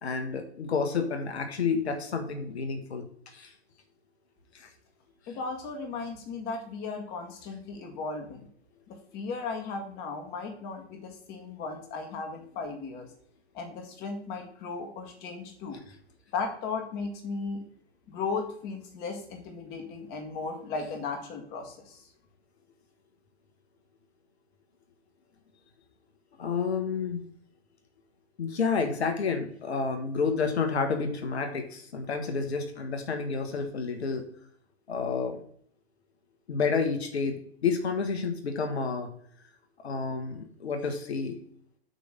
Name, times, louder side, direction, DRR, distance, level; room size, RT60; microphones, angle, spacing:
voice 1, 0.0-3.5 4.5-4.7 26.4-27.2 28.4-34.2 34.9-35.4 36.5-39.1 39.8-41.4, left 5 dB, 70° left, 6 dB, 1.5 m, -30 dB
voice 2, 5.3-8.5 8.9-13.1 13.5-15.8 16.3-17.6 18.1-22.1, left 4 dB, 30° left, 3 dB, 1.8 m, -36 dB
8.2 x 3.5 x 6.6 m, 0.62 s
hypercardioid pair, 130°, 33 cm